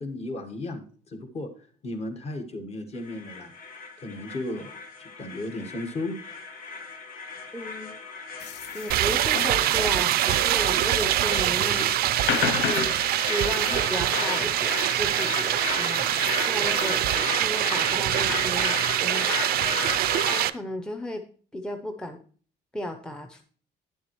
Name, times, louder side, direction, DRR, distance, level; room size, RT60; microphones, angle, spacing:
voice 1, 0.0-3.6 4.0-6.2, left 2 dB, 40° left, 5 dB, 1.4 m, -35 dB
sound 1, 3.0-20.5, left 4 dB, 60° left, 1.3 m, -35 dB
voice 2, 7.5-8.0 8.7-11.9 12.4-16.0 16.5-19.3 20.3-22.2 22.7-23.4, equal, 5° left, 5 dB, 0.6 m, -34 dB
sound 2, 8.4-17.1, left 10 dB, 75° left, 0.6 m, -35 dB
sound 3, 8.9-20.5, right 14 dB, 65° right, 0.4 m, -24 dB
10.0 x 7.2 x 3.1 m, 0.44 s
cardioid pair, 110°, 17 cm